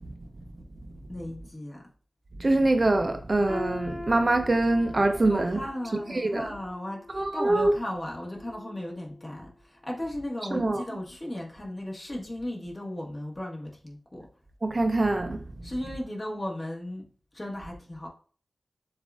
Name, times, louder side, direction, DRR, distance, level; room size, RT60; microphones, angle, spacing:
voice 1, 1.1-1.8 5.2-14.3 15.6-18.1, left 1 dB, 35° left, 1.4 m, -36 dB
voice 2, 2.4-5.6 5.9-6.5 7.1-7.7 10.5-10.9 14.6-15.7, right 2 dB, 45° right, 0.4 m, -24 dB
sound 1, 3.5-9.4 9.8-10.0 10.8-10.9, left 2 dB, 5° left, 1.5 m, -43 dB
7.3 x 2.5 x 2.4 m
cardioid pair, 55°, 0 cm